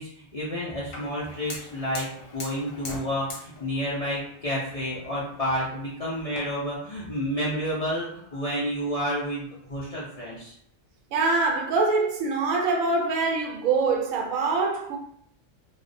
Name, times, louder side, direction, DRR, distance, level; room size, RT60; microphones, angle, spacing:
voice 1, 0.0-10.5, equal, 55° left, 0.4 m, -30 dB
Fire, 0.9-6.4, left 2 dB, 80° left, 1.1 m, -43 dB
voice 2, 11.1-15.0, right 3 dB, 80° right, 1.0 m, -24 dB
2.4 x 2.1 x 2.5 m
omnidirectional pair, 1.4 m